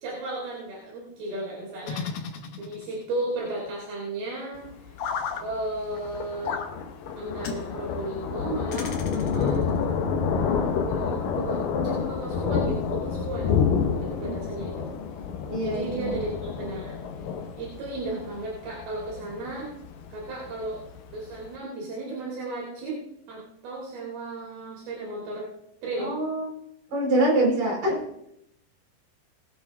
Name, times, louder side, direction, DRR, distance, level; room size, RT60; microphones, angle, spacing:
voice 1, 0.0-2.2 2.6-5.0 5.4-6.6 7.2-10.1 10.8-13.5 14.0-14.9 15.6-17.0 17.6-19.7 20.1-20.8 21.1-23.0 23.3-25.5 25.8-26.1, right 2 dB, 80° right, -3 dB, 4.4 m, -34 dB
sound 1, 1.8-3.0 5.0-5.4 6.4-6.7 7.4-7.6 8.7-9.6, left 6 dB, 85° left, 1.2 m, -33 dB
Thunder, 4.6-21.5, left 6 dB, 70° left, 2.4 m, -29 dB
voice 2, 15.5-16.1 26.0-26.5 26.9-28.0, right 1 dB, 55° right, -3 dB, 6.1 m, -24 dB
20.0 x 8.5 x 3.5 m, 0.78 s
omnidirectional pair, 4.4 m